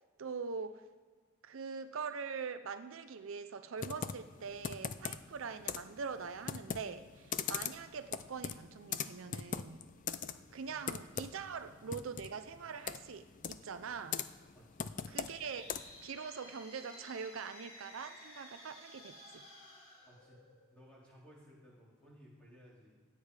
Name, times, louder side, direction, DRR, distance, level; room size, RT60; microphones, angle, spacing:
voice 1, 0.2-0.8 1.4-9.8 10.5-14.2 15.1-15.7 16.0-19.4, right 5 dB, 65° right, 10 dB, 0.5 m, -43 dB
Computer keyboard, 3.8-16.1, left 7 dB, 35° left, 0.4 m, -42 dB
voice 2, 14.5-15.0 20.0-20.4 20.7-22.9, equal, 5° left, -6 dB, 3.6 m, -59 dB
sound 1, 14.9-20.9, left 1 dB, 75° left, 4.0 m, -55 dB
16.5 x 9.1 x 4.8 m, 1.5 s
head